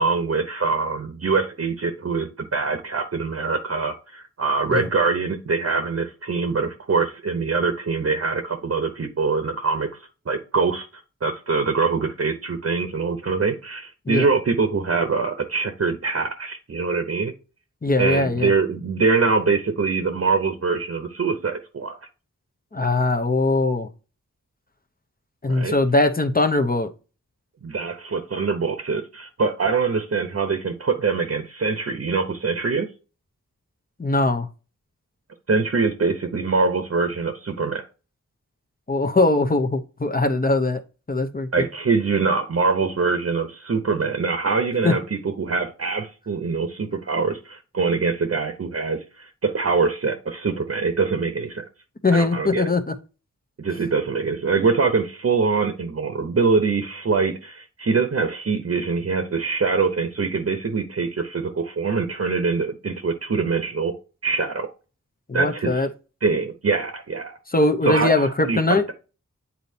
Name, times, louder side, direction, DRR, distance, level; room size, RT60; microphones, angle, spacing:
voice 1, 0.0-10.9 11.2-17.3 18.0-22.0 25.5-25.8 27.6-32.9 35.5-37.8 41.5-51.6 52.1-52.7 53.6-63.9 64.2-64.7 65.3-65.9 66.2-67.4 67.8-68.8, right 4 dB, 50° right, 7 dB, 0.8 m, -24 dB
voice 2, 17.8-18.5 22.7-23.9 25.4-26.9 34.0-34.5 38.9-40.8 41.1-41.7 44.8-44.9 52.0-52.9 65.3-65.9 67.5-68.8, left 2 dB, 30° left, 5 dB, 0.8 m, -21 dB
8.4 x 4.1 x 2.7 m, 0.33 s
wide cardioid pair, 85°, 30 cm